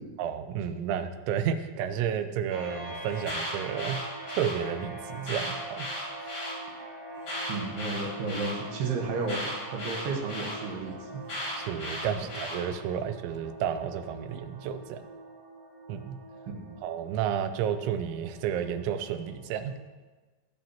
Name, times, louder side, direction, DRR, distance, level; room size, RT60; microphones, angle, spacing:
voice 1, 0.2-4.0 4.3-5.9 6.2-6.4 11.6-15.0 15.9-16.2 16.8-19.7, right 8 dB, 85° right, 10 dB, 3.0 m, -31 dB
sound 1, 2.5-19.7, right 2 dB, 45° right, 0.6 m, -44 dB
Alarm, 3.1-4.5 5.2-6.5 7.2-8.5 9.3-10.5 11.3-12.6, left 1 dB, 30° left, 4.7 m, -35 dB
voice 2, 7.5-9.4 9.7-11.2 16.5-16.7, right 4 dB, 70° right, 2 dB, 3.0 m, -32 dB
19.0 x 7.4 x 2.9 m, 1.3 s
omnidirectional pair, 5.2 m